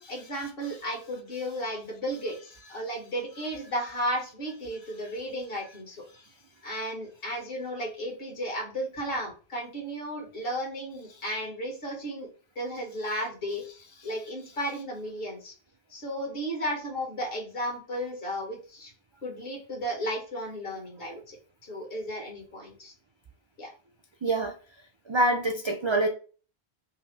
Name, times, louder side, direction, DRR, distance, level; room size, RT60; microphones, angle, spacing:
voice 1, 0.0-6.0 6.6-12.3 12.5-13.6 14.0-15.5 15.9-18.9 19.2-21.4 21.7-22.9 23.6-23.7, equal, 60° left, 1.6 m, -34 dB
voice 2, 24.2-24.5 25.1-26.1, right 2 dB, 50° right, 0.3 m, -25 dB
5.4 x 2.1 x 3.2 m
omnidirectional pair, 1.1 m